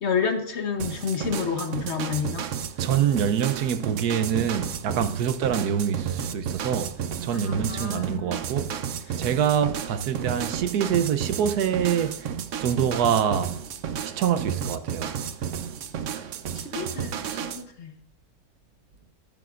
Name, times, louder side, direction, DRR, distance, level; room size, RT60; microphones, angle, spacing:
voice 1, 0.0-2.4 7.3-8.4 9.1-9.2 16.5-17.9, left 6 dB, 50° left, 1.2 m, -30 dB
sound 1, 0.8-17.6, right 8 dB, 60° right, 0.9 m, -32 dB
voice 2, 2.8-6.9 7.2-8.7 9.2-12.3 12.6-13.5 14.2-15.1, right 8 dB, 80° right, 1.3 m, -25 dB
14.0 x 10.5 x 2.5 m
omnidirectional pair, 1.6 m